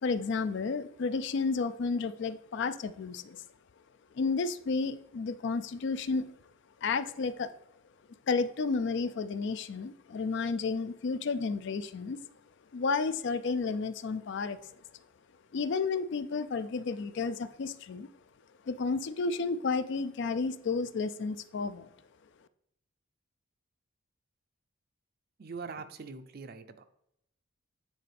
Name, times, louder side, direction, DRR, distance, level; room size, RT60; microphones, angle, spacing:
voice 1, 0.0-3.4 4.1-6.3 6.8-7.5 8.3-12.2 12.7-14.6 15.5-18.1 18.7-21.9, left 4 dB, 55° left, 13 dB, 0.4 m, -32 dB
voice 2, 25.4-26.9, right 4 dB, 45° right, 10 dB, 0.5 m, -42 dB
9.1 x 4.2 x 3.4 m, 0.78 s
head